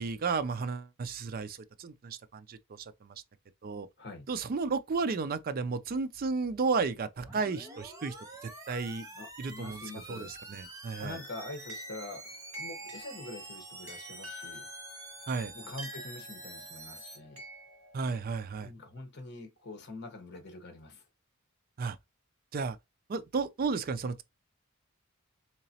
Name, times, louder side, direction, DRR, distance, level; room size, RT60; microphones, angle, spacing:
voice 1, 0.0-3.1 3.6-3.9 4.3-8.1 8.7-9.0 9.4-9.8 10.1-11.2 15.3-15.5 17.9-18.7 21.8-22.0 22.5-22.8 23.1-24.2, right 4 dB, 40° right, 0.4 m, -33 dB
sound 1, 7.2-17.2, right 2 dB, 15° right, 0.8 m, -47 dB
voice 2, 9.0-10.3 10.6-12.2 12.6-14.7 15.5-17.4 18.6-21.1, left 2 dB, 50° left, 1.1 m, -45 dB
sound 2, 10.9-18.2, equal, 70° right, 1.4 m, -48 dB
3.8 x 2.9 x 2.8 m
head